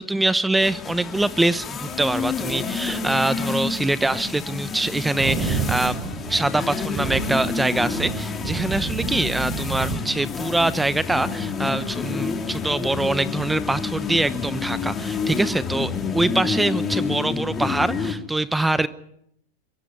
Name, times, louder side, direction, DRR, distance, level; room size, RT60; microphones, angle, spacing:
voice 1, 0.0-6.0 6.3-18.9, right 2 dB, 5° right, 15 dB, 0.9 m, -24 dB
sound 1, 0.6-18.1, left 5 dB, 25° left, 3.0 m, -29 dB
sound 2, 4.9-10.0, right 5 dB, 35° right, 4.7 m, -30 dB
22.5 x 15.0 x 9.8 m, 0.73 s
hypercardioid pair, 115°, 0 cm